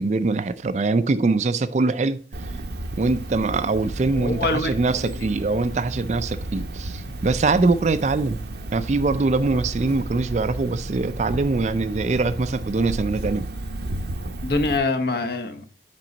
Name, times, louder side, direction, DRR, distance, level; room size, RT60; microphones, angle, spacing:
voice 1, 0.0-2.2 2.9-8.4 8.7-13.5, right 3 dB, 40° right, 0.4 m, -23 dB
Cricket, 2.3-14.8, right 1 dB, 60° right, 0.7 m, -33 dB
voice 2, 4.1-4.7 5.0-5.3 14.4-15.6, left 2 dB, 55° left, 0.9 m, -25 dB
7.4 x 5.3 x 3.9 m
head